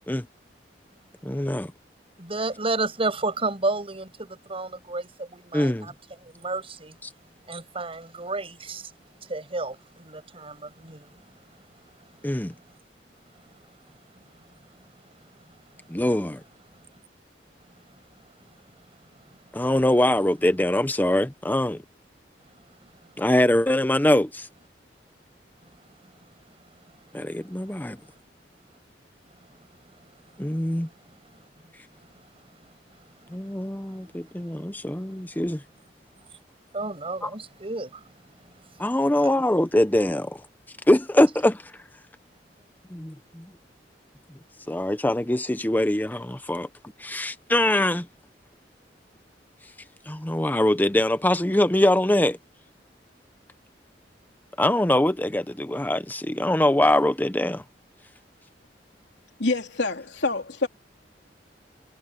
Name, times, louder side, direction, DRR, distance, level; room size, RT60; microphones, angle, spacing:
voice 1, 1.2-1.7 5.5-5.9 12.2-12.5 15.9-16.4 19.5-21.8 23.2-24.5 27.1-28.0 30.4-30.9 33.3-35.6 37.2-37.3 38.8-40.4 40.9-41.6 42.9-43.5 44.7-46.7 47.0-48.1 50.1-52.4 54.6-57.6, left 1 dB, 10° left, 0.8 m, -23 dB
voice 2, 2.2-5.9 6.2-7.0 7.5-8.9 9.2-11.1 32.1-32.2 33.2-33.3 33.6-34.1 36.7-38.0 38.4-38.5 39.2-39.3, right 3 dB, 35° right, 6.8 m, -31 dB
voice 3, 59.4-60.7, left 3 dB, 85° left, 3.0 m, -26 dB
head